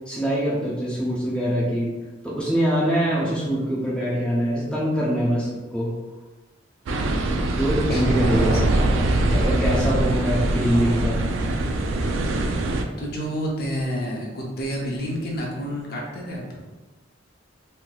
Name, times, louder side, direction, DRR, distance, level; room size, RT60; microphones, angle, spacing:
voice 1, 0.1-1.9 2.2-5.9 7.5-8.7 9.3-11.2, equal, 5° left, -7 dB, 0.5 m, -23 dB
sound 1, 6.9-12.8, right 2 dB, 80° right, 0.3 m, -23 dB
voice 2, 7.7-9.6 13.0-16.6, equal, 50° left, -2 dB, 0.6 m, -30 dB
3.1 x 2.7 x 2.2 m, 1.2 s
head